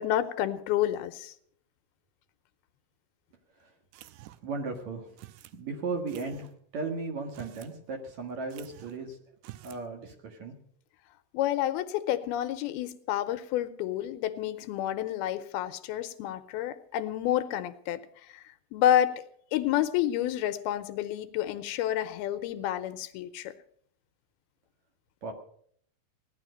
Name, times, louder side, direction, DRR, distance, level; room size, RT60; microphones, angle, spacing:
voice 1, 0.0-1.3 11.3-18.0 18.3-18.4 18.7-19.2 19.5-23.5, left 12 dB, 85° left, 10 dB, 2.7 m, -29 dB
sound 1, 3.9-4.6 5.2-5.6 6.1-6.5 7.2-7.8 8.0-8.1 8.5-9.0 9.4-9.9, right 15 dB, 90° right, 2.7 m, -49 dB
voice 2, 4.4-5.2 5.5-9.2 9.6-10.6 25.2-25.3, right 3 dB, 55° right, 4 dB, 2.5 m, -36 dB
17.0 x 11.0 x 6.3 m, 0.63 s
omnidirectional pair, 4.4 m